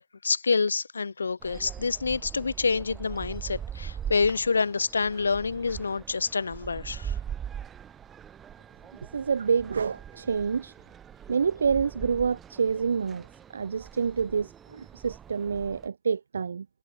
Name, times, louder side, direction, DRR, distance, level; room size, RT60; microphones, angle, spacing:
voice 1, 0.0-7.1, left 4 dB, 75° left, 0.8 m, -27 dB
sound 1, 1.4-15.9, right 8 dB, 15° right, 1.2 m, -41 dB
voice 2, 9.1-10.7 11.3-13.3 13.5-16.7, right 6 dB, 70° right, 1.5 m, -27 dB
figure-of-eight pair, 125°, 0 cm